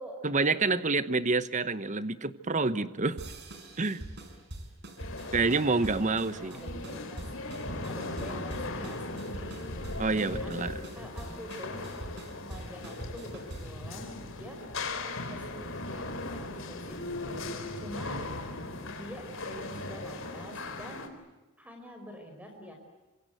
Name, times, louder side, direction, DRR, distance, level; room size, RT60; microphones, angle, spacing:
voice 1, 0.2-3.2 3.8-4.0 5.3-6.6 10.0-10.7, right 3 dB, 35° right, 13 dB, 1.0 m, -28 dB
sound 1, 3.2-13.8, right 1 dB, 55° right, 5.2 m, -43 dB
sound 2, 5.0-21.1, left 2 dB, 65° left, 4.0 m, -38 dB
voice 2, 5.8-7.5 7.8-9.7 10.4-10.5 10.9-11.9 12.4-14.6 15.3-17.4 17.8-18.2 18.8-21.1 21.6-22.7, equal, 5° right, 3 dB, 5.0 m, -46 dB
28.0 x 26.0 x 8.0 m, 1.1 s
head